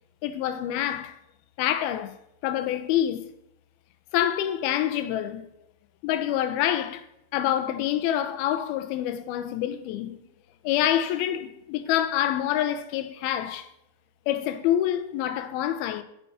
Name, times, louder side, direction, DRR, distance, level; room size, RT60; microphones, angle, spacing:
voice 1, 0.2-1.1 1.6-2.1 2.4-3.3 4.1-5.5 6.0-7.1 7.3-10.2 10.6-13.7 14.3-16.0, left 11 dB, 85° left, 2.4 m, -26 dB
8.4 x 4.3 x 5.6 m
omnidirectional pair, 4.4 m